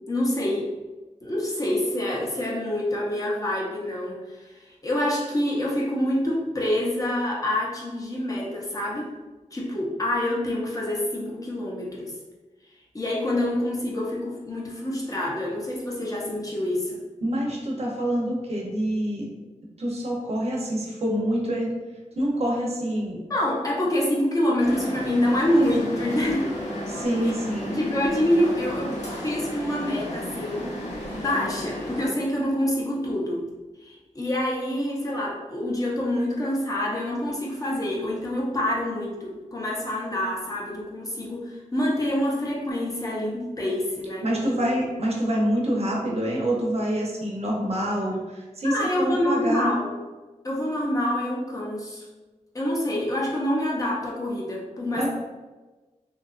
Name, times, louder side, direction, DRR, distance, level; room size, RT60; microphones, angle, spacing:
voice 1, 0.1-0.7 1.2-9.1 9.5-12.2 12.9-17.0 23.3-26.5 27.2-27.3 27.7-29.0 29.2-30.7 31.1-33.4 33.8-44.7 48.6-49.9 50.4-52.1 52.5-55.1, left 1 dB, 25° left, -4 dB, 0.5 m, -26 dB
voice 2, 17.2-19.3 19.8-21.7 22.2-23.2 26.9-27.8 44.2-49.8 55.0-55.1, equal, 55° right, -2 dB, 0.6 m, -26 dB
sound 1, 24.6-32.1, equal, 65° left, 0.7 m, -33 dB
2.7 x 2.3 x 2.4 m, 1.2 s
wide cardioid pair, 115°, 13 cm